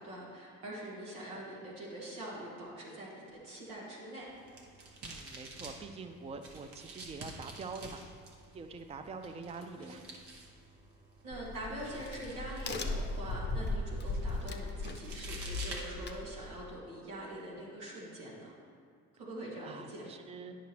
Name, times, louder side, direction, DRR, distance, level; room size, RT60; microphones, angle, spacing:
voice 1, 0.0-4.3 9.8-9.9 11.2-18.5 19.2-20.1, right 1 dB, 90° right, -5 dB, 1.7 m, -44 dB
sound 1, 4.2-16.6, right 2 dB, 65° right, 1.2 m, -50 dB
voice 2, 5.0-8.0 8.5-10.0 19.6-20.6, right 4 dB, 15° right, 6 dB, 0.5 m, -45 dB
Crack, 11.3-16.8, left 2 dB, 25° left, 0.6 m, -38 dB
9.1 x 6.1 x 2.9 m, 2.1 s
hypercardioid pair, 60°, 43 cm